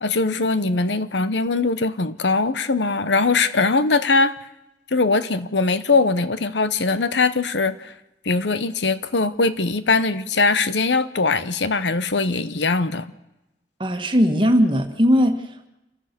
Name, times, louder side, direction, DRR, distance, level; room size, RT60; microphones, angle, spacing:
voice 1, 0.0-4.3 4.9-7.9 8.2-13.1, left 3 dB, 80° left, 13 dB, 0.9 m, -21 dB
voice 2, 13.8-15.7, equal, 25° right, 5 dB, 1.6 m, -19 dB
27.5 x 14.5 x 6.8 m, 0.96 s
head